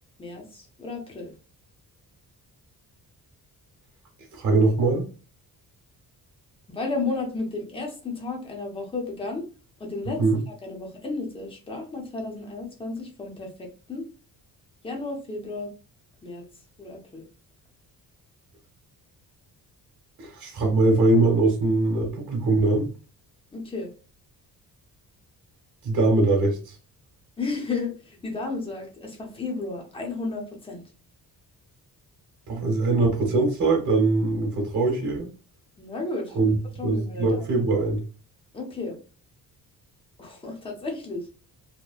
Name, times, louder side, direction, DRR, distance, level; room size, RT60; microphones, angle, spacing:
voice 1, 0.2-1.3 6.7-9.5 9.8-10.2 10.6-14.0 14.8-15.7 16.2-16.4 16.8-17.3 23.5-23.9 27.4-30.8 35.8-37.4 38.5-39.0 40.2-41.3, left 3 dB, 15° left, 1 dB, 0.6 m, -33 dB
voice 2, 4.3-5.0 10.2-10.4 20.2-22.9 25.8-26.7 32.5-35.3 36.3-36.6 36.8-38.0, right 2 dB, 50° right, 0 dB, 1.0 m, -22 dB
2.9 x 2.1 x 2.3 m, 0.36 s
cardioid pair, 135°, 38 cm